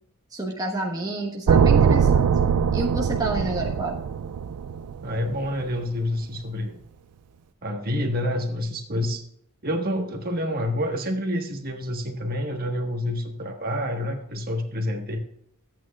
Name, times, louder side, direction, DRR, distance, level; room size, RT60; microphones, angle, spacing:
voice 1, 0.3-2.3 2.7-4.0, right 2 dB, 15° right, -1 dB, 1.2 m, -29 dB
sound 1, 1.5-5.6, right 7 dB, 90° right, 0.4 m, -21 dB
voice 2, 5.0-6.8 7.6-9.2 9.6-15.2, left 1 dB, 45° right, 3 dB, 1.4 m, -28 dB
13.5 x 8.9 x 2.4 m, 0.69 s
head